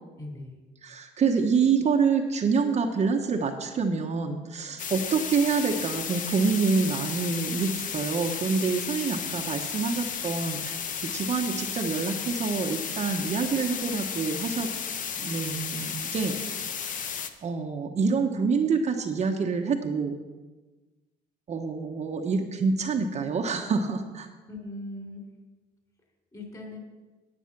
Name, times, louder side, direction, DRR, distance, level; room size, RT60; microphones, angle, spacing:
voice 1, 0.2-0.6 24.5-25.3 26.3-26.8, left 2 dB, 20° left, 2 dB, 3.3 m, -39 dB
voice 2, 0.8-14.7 15.2-16.3 17.4-20.2 21.5-24.3, right 5 dB, 40° right, 3 dB, 1.0 m, -27 dB
sound 1, 4.8-17.3, left 7 dB, 50° left, 0.9 m, -33 dB
10.5 x 9.0 x 6.0 m, 1.2 s
cardioid pair, 110°, 17 cm